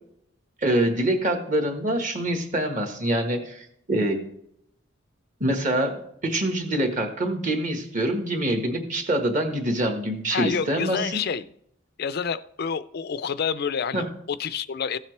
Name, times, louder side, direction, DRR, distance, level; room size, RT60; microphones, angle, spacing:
voice 1, 0.6-4.3 5.4-11.2 13.9-14.1, right 1 dB, 35° right, 4 dB, 1.5 m, -25 dB
voice 2, 10.3-11.4 12.0-15.0, left 6 dB, 50° left, 15 dB, 0.4 m, -28 dB
15.5 x 7.2 x 3.3 m, 0.73 s
head